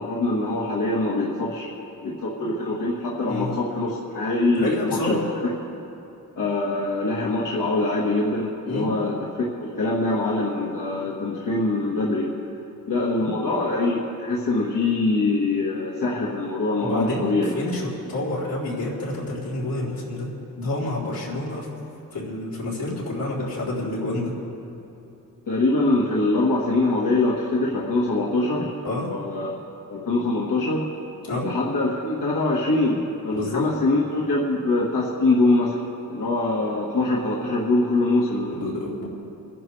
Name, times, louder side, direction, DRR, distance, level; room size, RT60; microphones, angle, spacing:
voice 1, 0.0-1.7 2.0-5.2 6.4-12.3 12.9-17.5 25.5-28.7 29.1-29.5 29.9-30.9 31.4-35.8 36.1-38.7, left 2 dB, 70° left, -4 dB, 1.6 m, -23 dB
voice 2, 4.6-5.3 8.7-8.9 16.8-20.3 20.6-21.7 22.1-24.3 28.8-29.1 31.2-31.5 33.3-33.6 38.5-39.1, left 2 dB, 85° left, -6 dB, 3.7 m, -28 dB
29.0 x 10.5 x 3.3 m, 2.9 s
wide cardioid pair, 145°, 34 cm